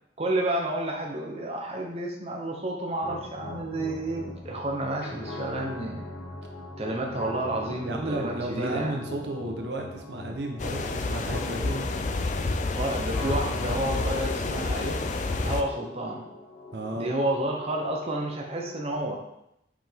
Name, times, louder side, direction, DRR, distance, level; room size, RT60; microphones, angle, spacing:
voice 1, 0.2-6.1 6.8-8.9 12.8-15.0 15.4-16.2 16.9-19.2, right 1 dB, 35° right, 0 dB, 0.8 m, -30 dB
sound 1, 3.0-19.0, left 1 dB, 65° left, 1.1 m, -41 dB
voice 2, 7.8-11.9 16.7-17.1, right 1 dB, 70° right, 2 dB, 0.8 m, -33 dB
sound 2, 10.6-15.6, left 3 dB, 45° left, 0.4 m, -29 dB
5.8 x 5.0 x 3.5 m, 0.81 s
head